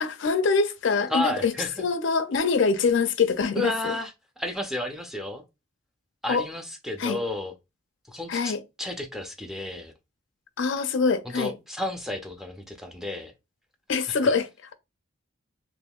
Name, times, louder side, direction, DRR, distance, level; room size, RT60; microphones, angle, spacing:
voice 1, 0.0-1.5 1.8-3.9 6.3-6.4 7.0-7.2 8.3-8.6 10.6-11.5 13.9-14.7, left 4 dB, 65° left, 0.4 m, -24 dB
voice 2, 1.1-1.8 3.5-5.4 6.2-7.5 8.1-9.9 11.2-13.3, left 1 dB, ahead, 0.4 m, -32 dB
3.5 x 2.9 x 2.3 m
head